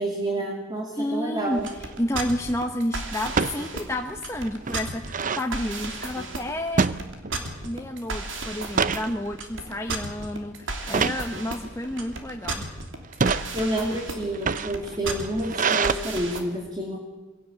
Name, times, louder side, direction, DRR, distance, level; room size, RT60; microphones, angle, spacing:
voice 1, 0.0-1.7 13.5-17.0, right 1 dB, 20° right, 0 dB, 2.6 m, -29 dB
voice 2, 1.0-7.1 7.6-12.7, left 1 dB, 15° left, 3 dB, 1.0 m, -30 dB
sound 1, 1.5-1.9 3.3-3.6 4.1-4.2 4.4-5.5 6.8-7.6 7.9-8.2 8.6-9.1 9.7-9.9 10.9-11.3 12.0-12.5 13.0-13.5 14.2-15.9, right 5 dB, 45° right, 0.7 m, -26 dB
sound 2, 1.5-16.4, right 3 dB, 75° right, 2.9 m, -34 dB
23.5 x 17.0 x 8.9 m, 1.2 s
head